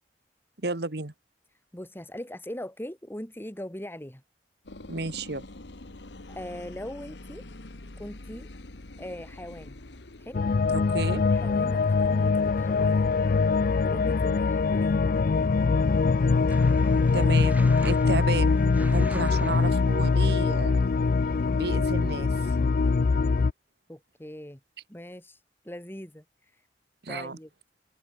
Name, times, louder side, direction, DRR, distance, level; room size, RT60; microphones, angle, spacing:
voice 1, 0.6-1.1 4.9-5.4 10.7-11.2 17.1-20.8 21.5-22.3 27.0-27.4, right 3 dB, 65° right, 1.5 m, -32 dB
voice 2, 1.7-4.2 6.3-7.5 8.0-8.5 9.0-9.8 10.2-10.4 11.2-13.2 13.8-15.0 23.9-24.6 24.9-26.7 27.1-27.5, left 1 dB, 15° left, 3.0 m, -40 dB
sound 1, 4.6-10.4, left 2 dB, 80° left, 1.6 m, -45 dB
sound 2, 10.3-23.5, left 4 dB, 55° left, 0.4 m, -23 dB
sound 3, 16.5-20.3, right 1 dB, 10° right, 2.6 m, -47 dB
open air
head